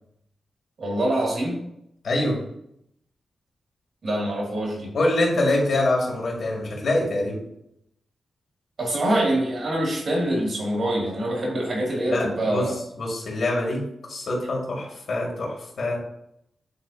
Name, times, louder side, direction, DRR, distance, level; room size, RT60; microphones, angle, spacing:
voice 1, 0.8-1.6 4.0-4.9 8.8-12.7, right 1 dB, 55° right, -2 dB, 2.6 m, -25 dB
voice 2, 2.0-2.4 4.9-7.4 12.1-13.8 14.1-16.0, left 1 dB, 60° left, -2 dB, 2.3 m, -25 dB
9.3 x 4.0 x 2.9 m, 0.76 s
wide cardioid pair, 145°, 0 cm